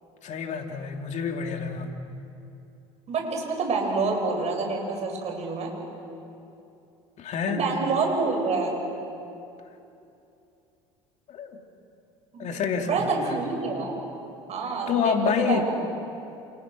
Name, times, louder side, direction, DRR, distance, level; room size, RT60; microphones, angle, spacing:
voice 1, 0.2-1.9 7.2-7.6 11.3-11.5 12.4-13.4 14.9-15.6, left 6 dB, 50° left, 4 dB, 2.9 m, -27 dB
voice 2, 3.1-5.7 7.5-8.8 12.3-12.5 12.8-14.0 14.5-15.6, right 4 dB, 45° right, 1 dB, 7.4 m, -27 dB
28.5 x 28.0 x 6.3 m, 2.8 s
hypercardioid pair, 70°, 15 cm